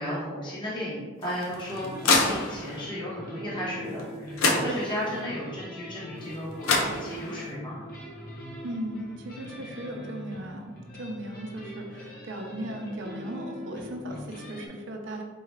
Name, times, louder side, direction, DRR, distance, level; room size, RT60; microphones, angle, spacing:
voice 1, 0.0-7.8, equal, 25° left, -9 dB, 1.0 m, -34 dB
sound 1, 1.2-2.8 4.0-4.1 4.4-5.2 6.3-6.4 6.6-7.5, left 3 dB, 85° left, 0.6 m, -26 dB
sound 2, 1.7-14.7, equal, 45° left, 0.6 m, -42 dB
voice 2, 8.6-15.2, right 1 dB, 60° right, 2 dB, 0.6 m, -37 dB
4.5 x 2.4 x 3.2 m, 1.4 s
head